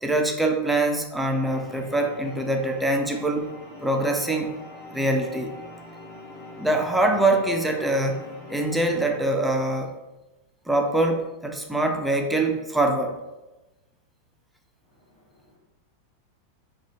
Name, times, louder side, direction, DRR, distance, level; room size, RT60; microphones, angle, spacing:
voice 1, 0.0-3.5 3.8-4.5 4.9-5.5 6.6-8.2 8.5-9.9 10.7-13.2, right 2 dB, 5° right, 3 dB, 0.4 m, -24 dB
sound 1, 1.3-9.2, left 1 dB, 35° left, 0.7 m, -43 dB
voice 2, 14.9-15.6, left 1 dB, 60° left, -6 dB, 1.4 m, -61 dB
3.2 x 2.2 x 2.9 m, 1.1 s
figure-of-eight pair, 90°, 0 cm